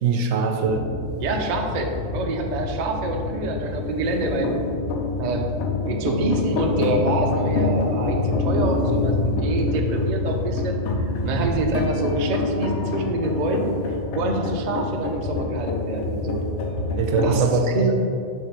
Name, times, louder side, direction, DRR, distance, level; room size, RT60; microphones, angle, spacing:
voice 1, 0.0-0.8 11.3-11.7 17.0-17.9, right 5 dB, 70° right, 4 dB, 0.9 m, -22 dB
sound 1, 0.7-17.4, left 3 dB, 65° left, 0.9 m, -26 dB
voice 2, 1.2-4.5 5.2-5.5 5.8-13.7 14.1-16.4 17.2-17.9, right 2 dB, 50° right, 2 dB, 0.5 m, -26 dB
5.7 x 3.5 x 5.2 m, 2.5 s
omnidirectional pair, 1.4 m